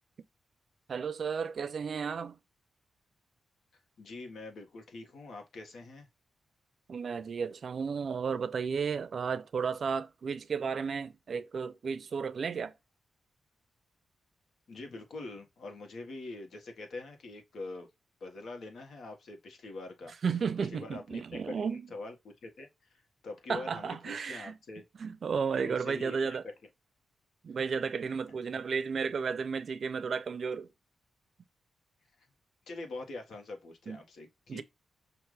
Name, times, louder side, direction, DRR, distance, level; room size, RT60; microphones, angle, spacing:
voice 1, 0.9-2.4 6.9-12.7 20.2-21.9 23.5-24.6 25.0-26.4 27.4-30.7 33.9-34.0 34.5-34.6, right 6 dB, 55° right, 0.5 m, -33 dB
voice 2, 4.0-6.1 14.7-17.9 18.2-20.1 20.6-24.8 25.5-26.5 32.7-34.6, left 2 dB, 75° left, 1.5 m, -44 dB
5.8 x 2.6 x 3.2 m
wide cardioid pair, 115°, 0 cm